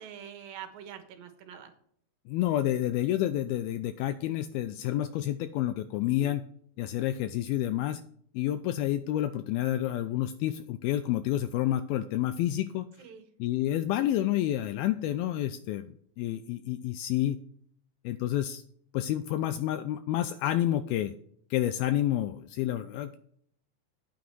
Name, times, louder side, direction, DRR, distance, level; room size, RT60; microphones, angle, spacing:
voice 1, 0.0-1.7 6.0-6.4 13.0-13.3, right 9 dB, 70° right, 7 dB, 2.9 m, -45 dB
voice 2, 2.3-6.4 6.8-8.0 8.3-12.9 13.4-17.4 18.0-18.6 18.9-21.1 21.5-23.2, left 13 dB, 80° left, 10 dB, 2.3 m, -29 dB
9.3 x 8.7 x 4.6 m, 0.64 s
omnidirectional pair, 4.6 m